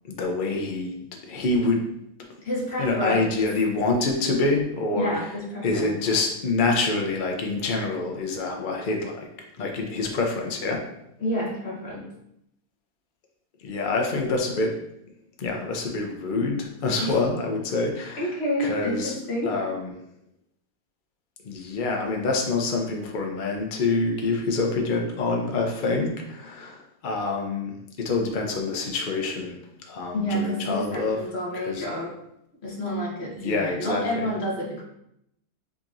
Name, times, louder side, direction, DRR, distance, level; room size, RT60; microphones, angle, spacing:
voice 1, 0.0-1.8 2.8-5.2 5.6-9.2 9.6-10.8 13.6-14.7 15.4-18.3 18.6-19.2 19.4-19.9 21.4-29.6 29.9-31.2 31.5-31.9 33.4-34.3, left 3 dB, 70° left, 1 dB, 0.4 m, -26 dB
voice 2, 2.4-3.3 4.9-6.0 11.2-12.1 17.0-17.2 18.2-19.5 30.1-32.1 32.6-34.8, equal, 45° left, -4 dB, 1.3 m, -29 dB
6.2 x 2.9 x 2.5 m, 0.79 s
omnidirectional pair, 1.8 m